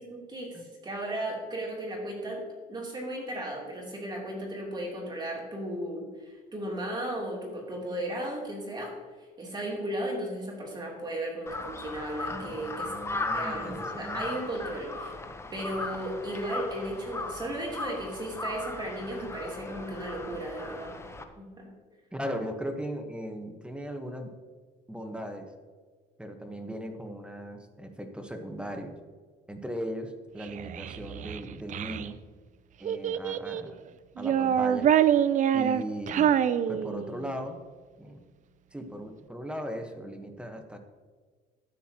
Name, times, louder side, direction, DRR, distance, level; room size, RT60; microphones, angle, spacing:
voice 1, 0.1-2.4 2.7-8.9 9.2-12.9 13.3-15.1 15.5-21.0 21.3-21.7, right 1 dB, 25° right, -3 dB, 3.1 m, -35 dB
Crow, 11.5-21.2, left 2 dB, 15° left, 0.8 m, -37 dB
voice 2, 12.3-14.4 22.1-24.3 24.9-25.5 26.2-29.0 29.5-32.2 32.8-33.8 34.2-34.9 35.5-37.6 38.0-38.2 38.7-40.8, equal, 5° right, 5 dB, 1.1 m, -38 dB
Child speech kid speaking, 30.4-32.1 32.8-33.7 34.2-37.3, right 9 dB, 50° right, 0.5 m, -26 dB
12.5 x 9.2 x 2.9 m, 1.5 s
cardioid pair, 110°, 17 cm